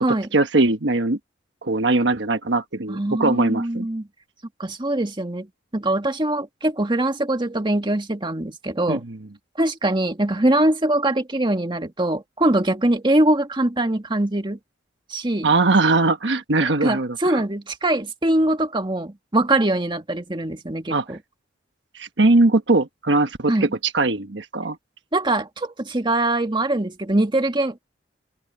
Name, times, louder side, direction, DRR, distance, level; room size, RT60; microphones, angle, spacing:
voice 1, 0.1-1.2 1.6-3.9 8.9-9.2 15.4-17.4 20.9-21.0 21.9-24.8, right 2 dB, 70° right, 1.3 m, -20 dB
voice 2, 2.9-4.1 4.6-5.5 5.7-9.0 9.6-14.6 15.1-15.5 16.8-21.2 23.5-23.7 25.1-27.8, right 1 dB, 25° right, 1.8 m, -22 dB
open air
head